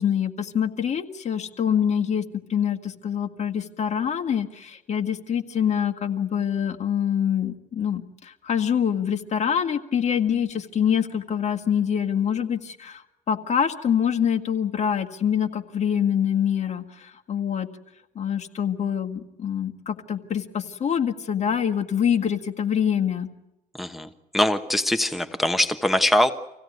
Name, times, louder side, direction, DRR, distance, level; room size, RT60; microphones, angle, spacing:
voice 1, 0.0-17.7 18.2-23.3, left 8 dB, 40° left, 5 dB, 1.9 m, -25 dB
voice 2, 23.8-26.3, left 1 dB, ahead, 7 dB, 1.1 m, -22 dB
26.0 x 16.5 x 9.4 m, 0.92 s
cardioid pair, 110°, 17 cm